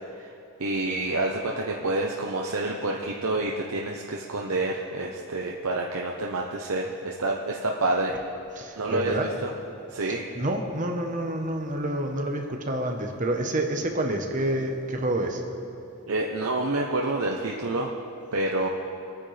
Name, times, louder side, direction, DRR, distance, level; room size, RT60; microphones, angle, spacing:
voice 1, 0.6-8.1 8.8-9.5 9.9-10.2 16.1-17.9 18.3-18.7, right 2 dB, 80° right, 0 dB, 0.9 m, -28 dB
voice 2, 8.6-9.3 10.1-15.4, right 1 dB, 35° right, 3 dB, 1.1 m, -28 dB
25.0 x 9.6 x 3.4 m, 2.7 s
head